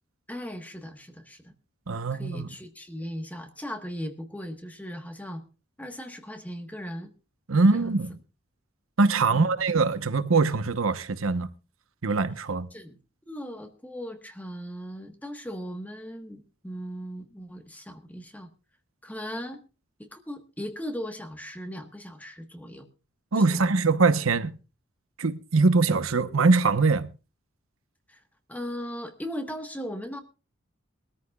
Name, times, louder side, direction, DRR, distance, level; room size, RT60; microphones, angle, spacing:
voice 1, 0.3-1.5 2.1-5.4 5.8-7.1 7.7-8.0 9.3-9.6 12.7-13.0 13.3-18.5 19.0-19.6 20.0-22.9 23.4-23.8 28.1-28.2 28.5-30.2, equal, 10° left, 1.3 m, -38 dB
voice 2, 1.9-2.5 7.5-8.1 9.0-11.5 12.0-12.7 23.3-24.5 25.2-27.1, right 3 dB, 90° right, 1.0 m, -23 dB
22.5 x 13.5 x 2.4 m
head